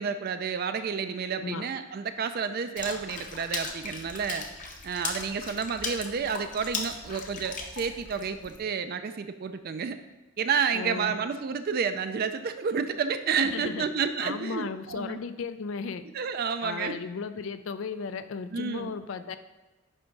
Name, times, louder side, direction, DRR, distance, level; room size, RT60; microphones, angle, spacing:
voice 1, 0.0-4.5 4.8-10.0 10.4-15.2 16.1-17.0 18.5-18.9, right 6 dB, 50° right, 9 dB, 0.4 m, -30 dB
Water / Splash splatter, 2.8-8.6, left 4 dB, 40° left, 0.9 m, -38 dB
voice 2, 10.7-11.2 13.4-13.9 14.2-16.0 16.6-19.4, left 5 dB, 65° left, 11 dB, 0.4 m, -35 dB
10.0 x 3.5 x 5.2 m, 1.2 s
head